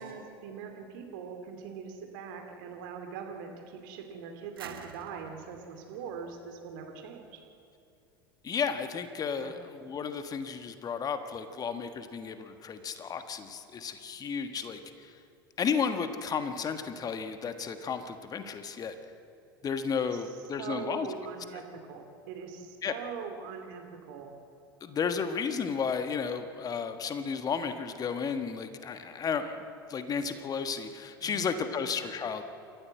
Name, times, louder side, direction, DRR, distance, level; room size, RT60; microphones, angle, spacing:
voice 1, 0.0-7.4 9.4-9.5 20.1-20.2 20.6-24.3 31.2-31.8, right 6 dB, 60° right, 4 dB, 2.6 m, -42 dB
sound 1, 4.6-7.3, right 7 dB, 75° right, 1.5 m, -49 dB
voice 2, 8.4-15.1 15.6-18.9 19.6-21.1 21.5-21.6 22.8-23.0 24.8-29.6 29.9-32.4, left 6 dB, 30° left, 9 dB, 1.5 m, -33 dB
28.0 x 14.5 x 7.7 m, 2.5 s
figure-of-eight pair, 75°, 12 cm